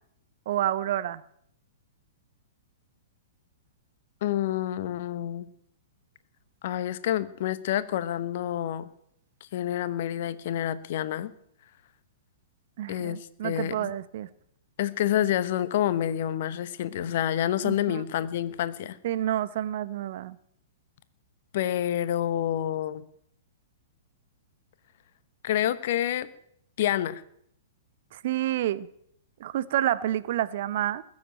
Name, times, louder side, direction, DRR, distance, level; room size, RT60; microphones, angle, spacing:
voice 1, 0.5-1.2 12.8-14.3 17.6-18.0 19.0-20.4 28.1-28.9 29.4-31.0, right 12 dB, 50° right, 0.8 m, -29 dB
voice 2, 4.2-5.5 6.6-8.9 9.5-11.3 12.9-13.9 14.8-19.0 21.5-23.0 25.4-26.3 26.8-27.2, left 11 dB, 50° left, 1.0 m, -28 dB
20.5 x 7.5 x 9.0 m
figure-of-eight pair, 110°, 0 cm